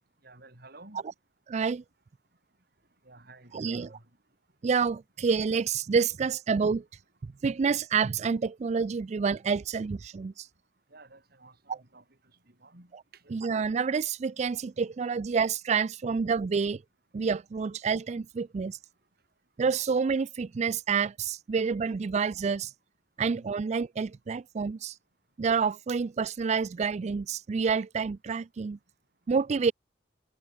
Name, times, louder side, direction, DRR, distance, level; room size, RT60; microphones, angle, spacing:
voice 1, 0.2-1.0 3.0-4.1 10.9-13.3 14.5-14.6 23.3-23.5 29.4-29.7, right 2 dB, 60° right, 5.8 m, -54 dB
voice 2, 1.5-1.8 3.5-3.9 4.6-6.8 7.2-10.3 11.7-11.8 13.3-16.8 17.1-18.8 19.6-22.7 23.2-24.9 25.4-28.8 29.3-29.7, right 5 dB, 40° right, 0.3 m, -28 dB
head